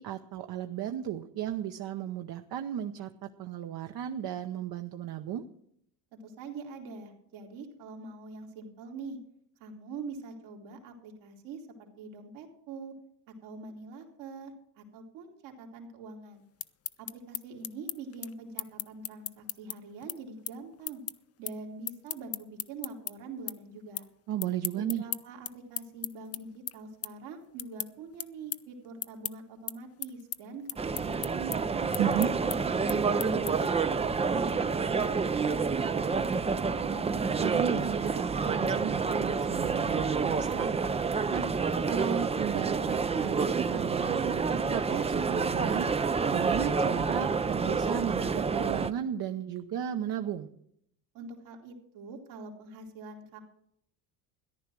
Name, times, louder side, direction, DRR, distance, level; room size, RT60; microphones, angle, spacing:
voice 1, 0.0-5.4 24.3-25.0 32.0-32.3 37.4-40.8 41.3-41.5 41.9-45.9 46.3-50.5, right 10 dB, 50° right, 6 dB, 0.9 m, -34 dB
voice 2, 6.1-9.2 9.6-12.9 13.4-16.4 17.0-21.0 21.4-24.1 24.8-31.9 32.5-34.1 34.4-37.0 51.1-53.4, right 4 dB, 70° right, 1 dB, 2.9 m, -44 dB
sound 1, 16.4-23.1 23.5-24.1 24.4-33.8, left 10 dB, 30° left, 0.6 m, -38 dB
sound 2, 30.8-48.9, right 5 dB, 15° right, 0.4 m, -28 dB
14.0 x 10.5 x 6.1 m, 0.71 s
supercardioid pair, 95°, 48 cm